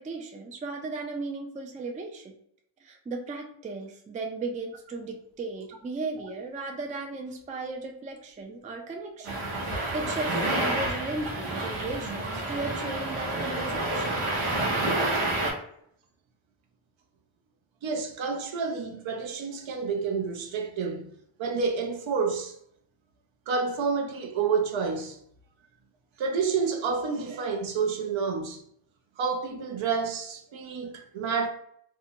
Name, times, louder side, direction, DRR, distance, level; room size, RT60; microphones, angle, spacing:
voice 1, 0.0-2.3 2.8-14.3, right 3 dB, 20° right, 0.3 m, -36 dB
sound 1, 9.2-15.5, right 2 dB, 85° right, 0.9 m, -29 dB
voice 2, 17.8-21.1 21.4-22.5 23.5-25.2 26.2-28.6 29.2-31.5, right 5 dB, 65° right, 0.6 m, -29 dB
2.6 x 2.2 x 2.7 m
cardioid pair, 85°, 50 cm